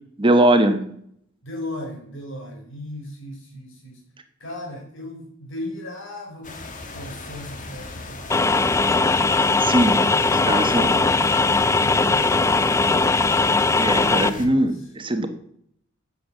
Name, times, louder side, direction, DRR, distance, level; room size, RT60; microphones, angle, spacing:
voice 1, 0.2-0.8 9.6-10.0 10.5-10.9 13.8-14.7 15.0-15.3, right 1 dB, 25° right, 8 dB, 1.1 m, -20 dB
voice 2, 1.4-4.0 4.4-6.6 6.9-8.3 10.4-12.4 14.2-14.9, left 1 dB, 65° left, 0 dB, 5.3 m, -37 dB
sound 1, 6.4-14.5, left 2 dB, 40° left, 1.9 m, -37 dB
sound 2, 8.3-14.3, left 3 dB, 15° left, 0.4 m, -19 dB
11.0 x 7.3 x 7.0 m, 0.67 s
head